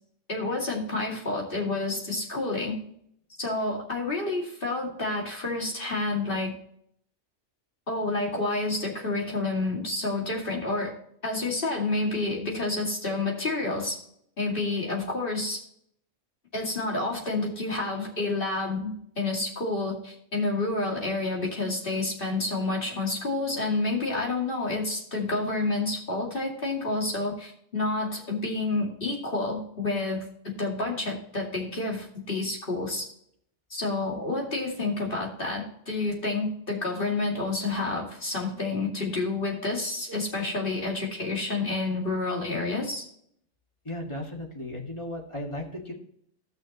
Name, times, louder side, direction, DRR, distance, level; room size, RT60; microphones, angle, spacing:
voice 1, 0.3-2.8 3.4-6.5 7.9-10.9 11.2-14.0 14.4-15.6 16.5-33.1 33.7-43.1, left 2 dB, 45° left, -1 dB, 2.6 m, -29 dB
voice 2, 43.8-45.9, left 1 dB, 25° left, 0 dB, 1.9 m, -35 dB
14.0 x 6.3 x 3.0 m, 0.68 s
omnidirectional pair, 1.3 m